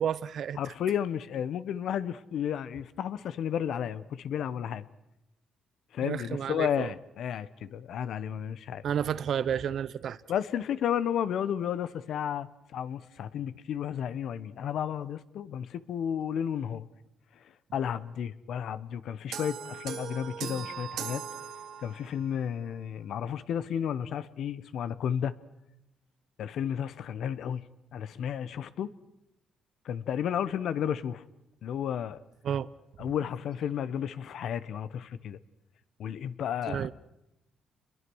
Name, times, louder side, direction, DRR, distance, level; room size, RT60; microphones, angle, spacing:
voice 1, 0.0-0.7 6.0-6.9 8.8-10.2 32.4-32.7 36.7-36.9, right 8 dB, 65° right, 17 dB, 0.8 m, -31 dB
voice 2, 0.6-4.9 5.9-8.8 10.3-16.9 17.7-21.2 21.8-25.4 26.4-27.6 27.9-28.9 29.8-31.2 31.6-32.2 33.0-35.4 36.0-36.9, left 9 dB, 70° left, 15 dB, 1.1 m, -32 dB
sound 1, 19.3-22.2, right 8 dB, 85° right, 2.3 m, -39 dB
28.5 x 22.0 x 6.3 m, 0.88 s
cardioid pair, 90°, 0 cm